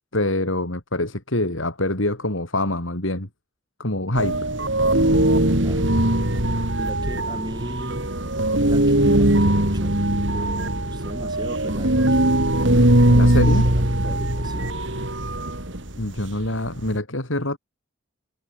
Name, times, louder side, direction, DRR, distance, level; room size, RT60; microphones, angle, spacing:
voice 1, 0.1-3.3 3.8-4.4 13.1-13.6 16.0-17.6, left 1 dB, 75° left, 4.8 m, -25 dB
sound 1, 4.2-17.0, right 1 dB, 65° right, 4.0 m, -20 dB
voice 2, 5.6-5.9 6.8-8.1 8.6-12.3 13.0-14.8, equal, 20° right, 6.6 m, -37 dB
head